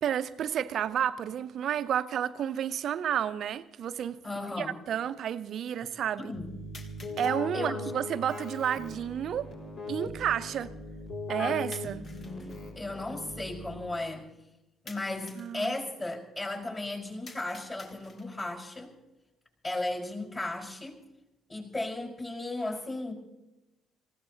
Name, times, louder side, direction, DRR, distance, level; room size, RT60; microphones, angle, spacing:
voice 1, 0.0-4.2 4.6-6.3 7.2-9.5 9.9-10.7 11.3-12.0 15.4-15.8, right 9 dB, 55° right, 12 dB, 0.7 m, -31 dB
sound 1, 2.4-2.5 3.5-3.6 6.7-7.4 11.7-12.6 14.9-15.6 17.3-18.4, left 3 dB, 45° left, 2.1 m, -51 dB
voice 2, 4.2-4.8 6.2-6.5 7.5-7.9 12.0-14.3 14.8-18.9 19.6-21.0 21.5-23.1, left 2 dB, 25° left, -1 dB, 5.3 m, -35 dB
Keyboard (musical), 6.3-14.2, left 2 dB, 60° left, 4.6 m, -39 dB
27.0 x 15.5 x 2.9 m, 0.99 s
figure-of-eight pair, 50°, 0 cm